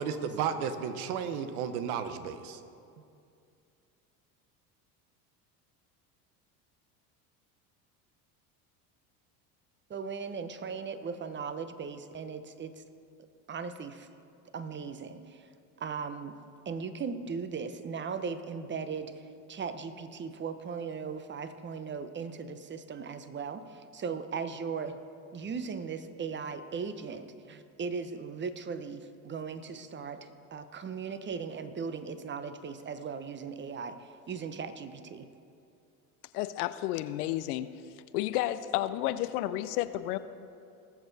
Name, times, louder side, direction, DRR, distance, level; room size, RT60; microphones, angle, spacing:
voice 1, 0.0-2.6, right 7 dB, 75° right, 10 dB, 1.0 m, -33 dB
voice 2, 9.9-12.8 13.5-14.1 14.5-15.5 15.8-16.4 16.7-19.2 19.5-25.0 25.3-35.3, right 5 dB, 25° right, 11 dB, 0.8 m, -38 dB
voice 3, 36.3-37.7 38.1-40.2, left 14 dB, 80° left, 13 dB, 0.6 m, -31 dB
19.0 x 7.0 x 4.0 m, 2.5 s
hypercardioid pair, 85°, 44 cm